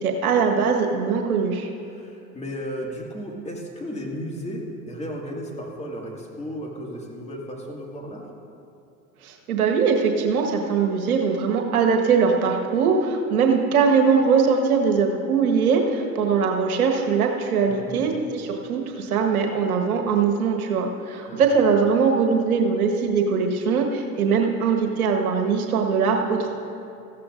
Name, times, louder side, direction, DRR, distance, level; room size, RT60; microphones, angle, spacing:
voice 1, 0.0-1.7 9.2-26.5, right 5 dB, 70° right, 2 dB, 1.5 m, -21 dB
voice 2, 1.9-8.3 17.7-18.1 21.3-21.4, equal, 15° left, -1 dB, 2.2 m, -34 dB
18.0 x 14.5 x 2.6 m, 2.6 s
hypercardioid pair, 85°, 44 cm